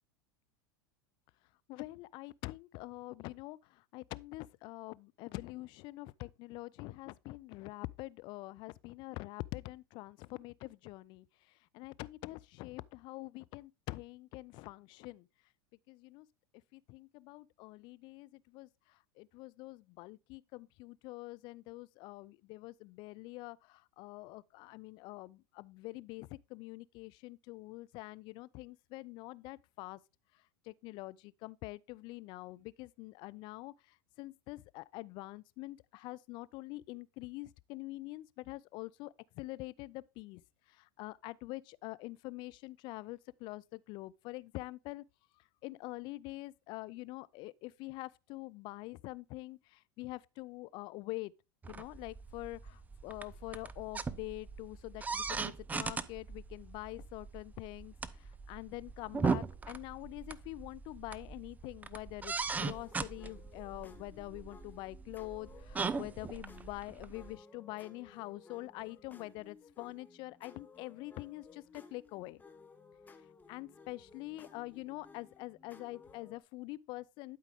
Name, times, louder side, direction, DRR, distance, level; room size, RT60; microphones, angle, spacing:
voice 1, 1.7-11.3 11.7-15.3 15.9-16.3 16.7-30.0 30.7-40.4 40.7-45.0 45.6-51.3 51.7-72.4 73.5-77.4, left 20 dB, 45° left, 0.4 m, -45 dB
sound 1, 51.6-67.4, right 4 dB, 15° right, 0.5 m, -39 dB
sound 2, 62.5-76.4, left 4 dB, 15° left, 1.0 m, -58 dB
11.5 x 4.7 x 3.5 m
hypercardioid pair, 90°, 11 cm